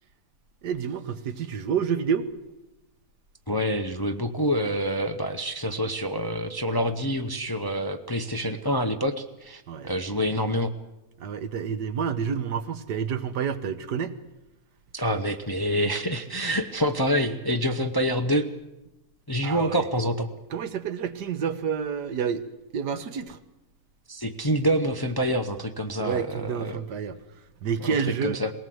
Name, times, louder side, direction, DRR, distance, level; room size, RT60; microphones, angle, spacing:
voice 1, 0.6-2.3 9.7-9.9 11.2-14.2 19.4-19.9 20.5-22.4 22.7-23.4 26.0-27.2 27.6-28.4, right 7 dB, 85° right, 1.7 m, -29 dB
voice 2, 3.5-10.7 14.9-18.5 19.3-20.3 24.1-26.8 27.8-28.0 28.2-28.5, equal, 20° left, 0.7 m, -27 dB
20.5 x 18.0 x 7.8 m
omnidirectional pair, 1.7 m